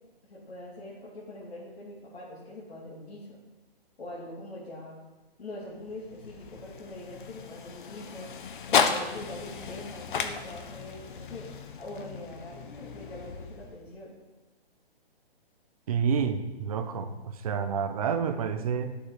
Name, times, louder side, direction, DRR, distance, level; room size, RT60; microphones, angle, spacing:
voice 1, 0.2-3.4 4.0-5.0 5.4-8.3 8.7-11.5 11.8-14.1, left 1 dB, 90° left, -7 dB, 3.0 m, -43 dB
sound 1, 5.7-14.0, left 6 dB, 55° left, 1.0 m, -34 dB
voice 2, 15.9-19.0, right 6 dB, 35° right, 9 dB, 0.8 m, -29 dB
10.5 x 7.0 x 5.0 m, 1.2 s
hypercardioid pair, 160°, 31 cm